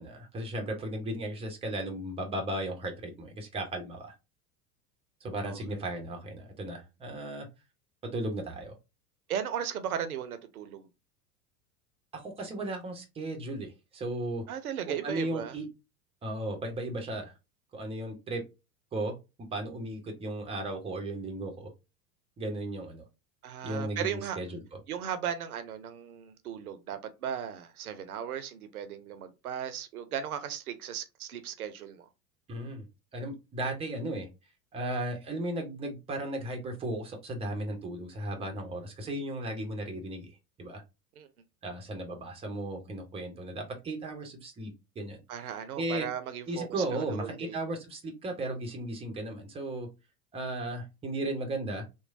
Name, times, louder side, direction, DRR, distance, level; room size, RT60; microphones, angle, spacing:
voice 1, 0.0-4.1 5.2-7.5 8.0-8.7 12.1-14.4 14.9-15.7 16.2-17.3 17.7-18.4 18.9-19.1 19.5-21.7 22.4-23.1 23.6-24.6 32.5-32.9 33.1-34.3 34.7-40.8 41.6-45.2 45.8-46.1 46.5-49.9 50.3-51.8, right 1 dB, 15° right, 0.5 m, -35 dB
voice 2, 5.4-5.8 9.3-10.9 14.5-15.6 23.4-24.4 24.9-32.1 41.2-41.3 45.3-47.6, right 9 dB, 70° right, 0.5 m, -36 dB
2.9 x 2.1 x 2.4 m
figure-of-eight pair, 80°, 47 cm